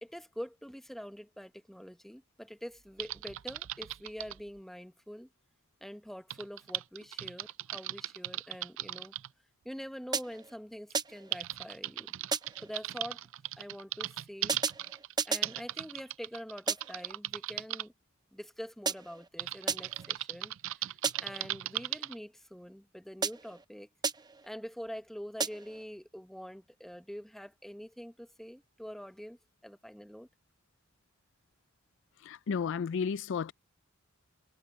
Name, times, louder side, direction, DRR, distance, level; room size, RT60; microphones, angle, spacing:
voice 1, 0.0-5.3 5.8-9.1 9.6-12.1 12.6-13.2 13.6-14.6 15.2-17.9 18.3-20.9 21.2-23.9 24.4-30.3, equal, ahead, 1.0 m, -45 dB
Typing, 3.0-4.4 6.3-9.3 10.3-10.4 10.9-17.8 19.4-22.2, right 15 dB, 65° right, 0.4 m, -38 dB
sound 1, 10.1-10.6 10.9-11.4 12.3-12.7 14.5-15.6 16.7-17.1 18.9-19.3 19.7-20.1 21.0-21.5 23.2-23.6 24.0-24.5 25.4-25.8, right 5 dB, 20° right, 0.7 m, -34 dB
voice 2, 32.2-33.5, left 6 dB, 65° left, 0.4 m, -32 dB
head